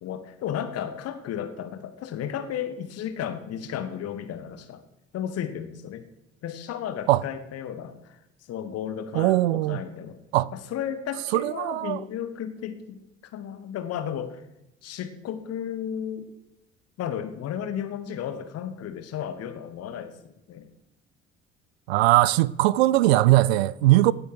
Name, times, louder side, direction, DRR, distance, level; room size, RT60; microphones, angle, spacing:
voice 1, 0.0-4.8 5.1-6.1 6.4-8.2 8.5-10.2 10.5-13.0 13.3-14.4 14.8-16.3 17.0-20.7, left 9 dB, 45° left, 1.4 m, -34 dB
voice 2, 9.1-9.8 10.3-10.5 11.3-12.0 21.9-24.1, right 17 dB, 70° right, 0.5 m, -20 dB
16.5 x 8.8 x 4.8 m
figure-of-eight pair, 50°, 33 cm